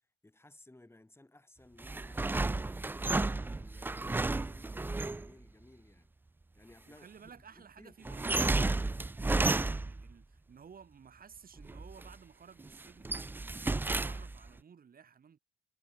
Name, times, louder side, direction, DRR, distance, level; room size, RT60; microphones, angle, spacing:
voice 1, 0.2-2.8 3.5-6.1 6.5-7.3 7.6-8.3, left 2 dB, 10° left, 6.4 m, -58 dB
sound 1, 1.8-5.3 8.0-10.1 11.6-12.1 12.6-14.5, right 2 dB, 10° right, 0.4 m, -32 dB
voice 2, 6.9-15.4, right 7 dB, 45° right, 5.8 m, -56 dB
cardioid pair, 90°, 20 cm